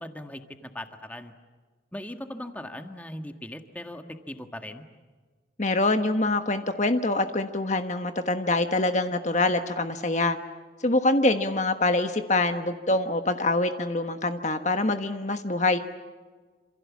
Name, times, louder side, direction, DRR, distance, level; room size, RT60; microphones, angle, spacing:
voice 1, 0.0-1.3 1.9-4.8, left 1 dB, 10° left, 6 dB, 1.7 m, -39 dB
voice 2, 5.6-10.4 10.8-15.8, left 2 dB, 40° left, 7 dB, 1.3 m, -25 dB
28.0 x 27.5 x 7.3 m, 1.4 s
head